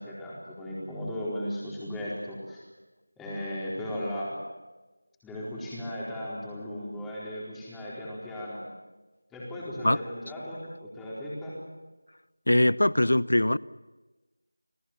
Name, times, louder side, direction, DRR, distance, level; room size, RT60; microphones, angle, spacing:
voice 1, 0.0-2.6 3.2-4.4 5.2-8.6 9.3-11.6, left 1 dB, 5° left, -7 dB, 4.4 m, -36 dB
voice 2, 12.5-13.6, left 1 dB, 75° left, 20 dB, 0.8 m, -22 dB
29.5 x 19.0 x 7.4 m, 1.2 s
figure-of-eight pair, 170°, 0 cm